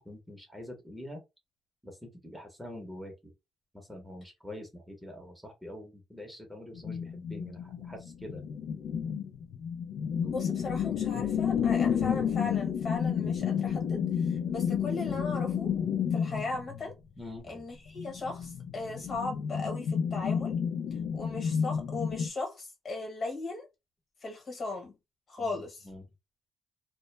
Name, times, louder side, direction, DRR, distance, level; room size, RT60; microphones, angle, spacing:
voice 1, 0.0-1.2 1.8-3.3 3.7-8.4 17.2-17.6 25.4-26.1, left 1 dB, 5° right, 0.8 m, -45 dB
sound 1, 6.7-16.9 17.9-22.3, left 7 dB, 80° left, 0.3 m, -31 dB
voice 2, 10.2-15.7 16.1-16.9 17.5-20.5 21.1-23.7 24.2-24.9 25.3-25.9, left 3 dB, 45° left, 1.2 m, -37 dB
2.1 x 2.1 x 3.1 m
cardioid pair, 90°, 0 cm